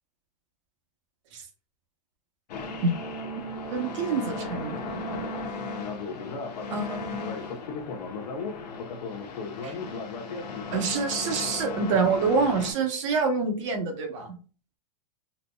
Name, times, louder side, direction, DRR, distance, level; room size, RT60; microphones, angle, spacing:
sound 1, 2.5-12.7, left 3 dB, 80° left, 0.9 m, -35 dB
voice 1, 3.7-5.3 6.7-7.4 9.6-9.8 10.7-14.4, right 4 dB, 45° right, 4 dB, 0.8 m, -27 dB
4.1 x 2.7 x 2.2 m, 0.38 s
supercardioid pair, 165°, 21 cm